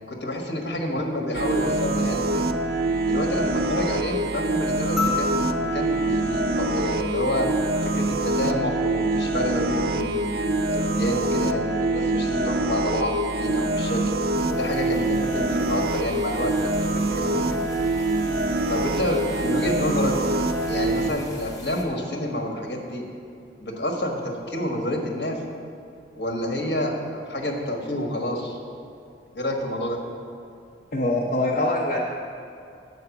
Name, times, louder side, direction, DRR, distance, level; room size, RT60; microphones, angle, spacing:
voice 1, 0.1-2.5 3.0-7.5 7.8-14.0 14.5-17.6 18.7-20.1 20.7-23.0 23.6-25.4 26.2-28.6 29.3-30.0, left 1 dB, 70° left, 1 dB, 1.3 m, -28 dB
sound 1, 1.3-21.1, right 2 dB, 55° right, 0.4 m, -25 dB
sound 2, 5.0-7.5 9.1-9.2, left 6 dB, ahead, 0.9 m, -32 dB
sound 3, 14.3-21.8, left 1 dB, 20° left, 0.8 m, -43 dB
voice 2, 30.9-32.0, left 2 dB, 50° left, -3 dB, 0.6 m, -23 dB
8.4 x 4.6 x 7.0 m, 2.6 s
head